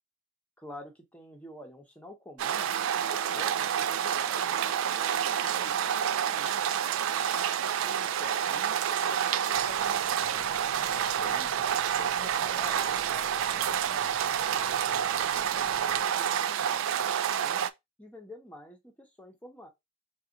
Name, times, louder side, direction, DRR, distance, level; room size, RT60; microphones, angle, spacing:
voice 1, 0.6-2.7 3.0-7.4 7.8-10.5 11.2-14.7 15.1-17.6 18.0-19.7, left 1 dB, 5° left, 0.9 m, -49 dB
sound 1, 2.4-17.7, right 9 dB, 70° right, 0.3 m, -28 dB
sound 2, 9.5-16.1, left 2 dB, 25° left, 0.4 m, -53 dB
4.0 x 2.4 x 3.8 m
head